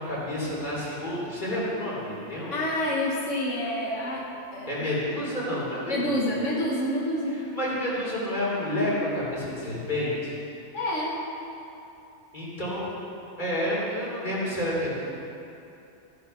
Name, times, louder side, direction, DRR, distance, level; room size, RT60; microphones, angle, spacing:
voice 1, 0.0-2.6 4.7-6.2 7.5-10.3 12.3-13.0 13.4-15.1, left 1 dB, 40° left, -6 dB, 3.7 m, -29 dB
voice 2, 2.5-4.7 5.9-7.4 10.7-11.2, left 1 dB, 90° left, -3 dB, 1.7 m, -28 dB
15.0 x 8.7 x 5.7 m, 2.8 s
omnidirectional pair, 1.2 m